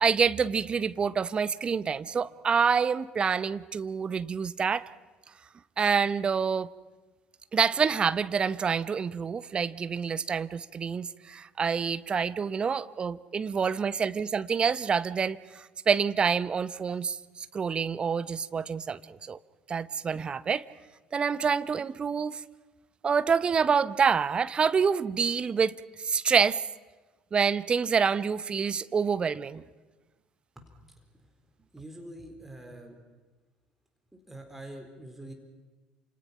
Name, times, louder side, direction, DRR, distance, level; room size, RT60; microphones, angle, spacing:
voice 1, 0.0-4.8 5.8-6.7 7.5-19.4 19.7-20.6 21.1-22.4 23.0-26.6 27.3-29.6, right 6 dB, 30° right, 16 dB, 0.8 m, -27 dB
voice 2, 30.6-31.1 31.7-33.0 34.3-35.3, right 1 dB, 10° right, 3 dB, 3.9 m, -45 dB
28.5 x 27.0 x 5.8 m, 1.3 s
figure-of-eight pair, 60°, 3 cm